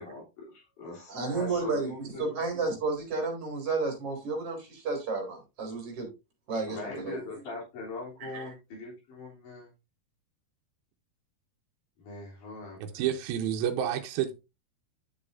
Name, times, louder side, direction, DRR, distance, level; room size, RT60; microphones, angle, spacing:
voice 1, 0.0-2.3 6.7-9.7 12.0-13.0, left 3 dB, 50° left, 4.7 m, -41 dB
voice 2, 1.1-6.1 6.5-7.2 8.2-8.5, right 3 dB, 40° right, 4.0 m, -32 dB
voice 3, 12.8-14.3, right 10 dB, 75° right, 2.6 m, -29 dB
10.5 x 6.7 x 2.6 m
omnidirectional pair, 4.6 m